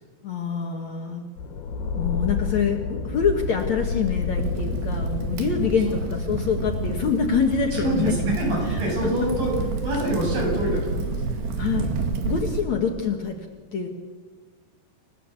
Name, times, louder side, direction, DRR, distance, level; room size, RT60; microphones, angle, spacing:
voice 1, 0.2-1.2 2.0-8.1 8.7-8.8 11.6-11.9 12.2-13.4 13.7-13.9, left 6 dB, 55° left, 2 dB, 2.5 m, -25 dB
sound 1, 1.4-11.1, left 5 dB, 70° left, 3.8 m, -32 dB
Crackle, 3.4-12.6, right 4 dB, 80° right, 4.1 m, -29 dB
voice 2, 7.7-11.4 11.7-12.0, right 1 dB, 60° right, -1 dB, 9.7 m, -26 dB
30.0 x 16.0 x 8.3 m, 1.4 s
omnidirectional pair, 4.7 m